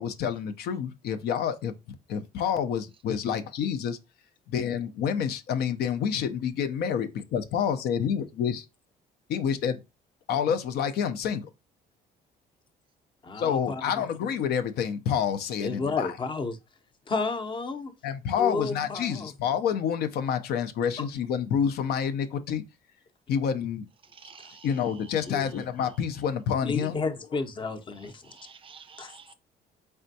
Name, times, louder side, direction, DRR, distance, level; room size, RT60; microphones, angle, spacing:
voice 1, 0.0-1.7 2.1-4.0 4.5-8.6 9.3-9.8 10.3-11.5 13.3-16.2 18.0-22.6 23.3-23.8 24.6-27.0, left 8 dB, 70° left, 0.5 m, -28 dB
voice 2, 13.2-14.1 15.6-16.6 17.1-17.9 18.4-19.3 25.3-25.4 26.6-28.2 29.0-29.1, left 4 dB, 30° left, 0.7 m, -32 dB
voice 3, 24.2-24.7 28.3-29.3, right 6 dB, 30° right, 0.3 m, -49 dB
4.3 x 3.4 x 2.6 m
cardioid pair, 110°, 17 cm